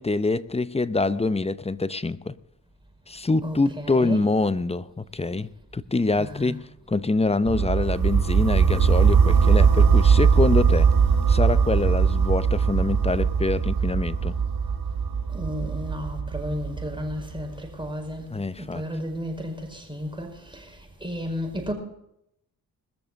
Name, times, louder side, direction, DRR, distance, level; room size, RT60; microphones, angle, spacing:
voice 1, 0.0-2.3 3.1-10.9 11.3-14.3 18.3-18.8, left 3 dB, 15° left, 0.7 m, -25 dB
voice 2, 3.4-4.2 6.2-6.6 15.3-18.3 18.6-21.7, equal, 10° right, 5.1 m, -33 dB
sound 1, 7.5-17.4, right 6 dB, 60° right, 5.2 m, -20 dB
20.5 x 6.9 x 7.5 m
supercardioid pair, 45°, 39 cm